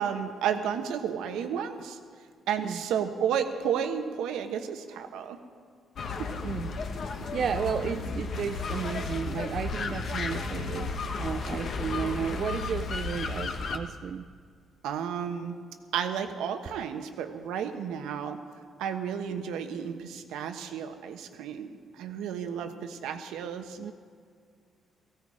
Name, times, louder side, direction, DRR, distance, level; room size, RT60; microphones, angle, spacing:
voice 1, 0.0-2.0 2.5-5.4 6.2-6.3 14.8-15.6 15.9-18.4 18.8-23.8, right 8 dB, 90° right, 7 dB, 1.2 m, -32 dB
sound 1, 6.0-13.8, left 4 dB, 60° left, 1.3 m, -33 dB
voice 2, 7.0-14.3 23.8-23.9, right 7 dB, 60° right, 8 dB, 0.5 m, -33 dB
18.0 x 15.5 x 5.0 m, 2.1 s
cardioid pair, 90°, 0 cm